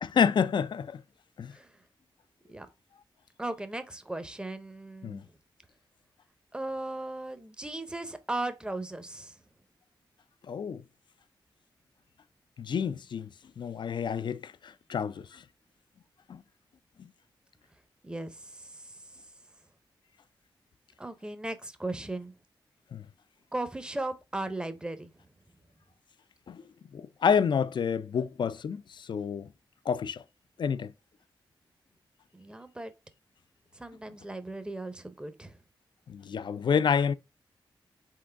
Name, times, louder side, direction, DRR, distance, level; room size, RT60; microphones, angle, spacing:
voice 1, 0.0-1.0 1.4-1.5 5.0-5.2 10.5-10.8 12.6-13.3 13.6-15.4 16.3-16.4 17.0-17.1 22.9-23.0 26.5-26.6 26.9-29.5 29.9-30.2 30.6-30.9 36.1-37.1, left 7 dB, 60° left, 0.3 m, -29 dB
voice 2, 3.4-5.2 6.5-9.4 18.0-19.0 21.0-22.3 23.5-25.1 32.3-32.9 33.7-35.5, right 2 dB, 10° right, 0.7 m, -37 dB
3.8 x 3.7 x 3.3 m
cardioid pair, 65°, 9 cm